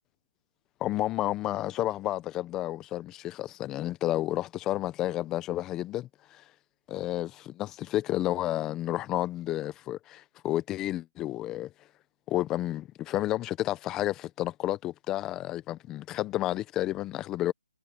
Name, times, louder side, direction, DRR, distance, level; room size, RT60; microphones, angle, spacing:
voice 1, 0.8-6.4 6.9-11.7 12.3-17.5, left 14 dB, 10° left, 0.8 m, -31 dB
hypercardioid pair, 165°, 4 cm